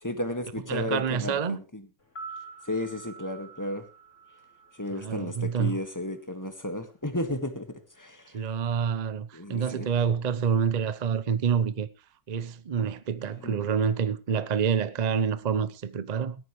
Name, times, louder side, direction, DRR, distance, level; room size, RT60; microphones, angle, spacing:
voice 1, 0.0-1.9 2.7-3.8 4.7-8.4 9.3-9.9 13.4-13.6, left 1 dB, 10° left, 1.6 m, -33 dB
voice 2, 0.7-1.6 4.9-5.8 8.3-11.9 12.3-16.4, right 7 dB, 55° right, 0.4 m, -27 dB
sound 1, 2.0-6.2 6.4-6.5, right 4 dB, 40° left, 3.9 m, -47 dB
18.5 x 14.0 x 3.2 m
omnidirectional pair, 2.0 m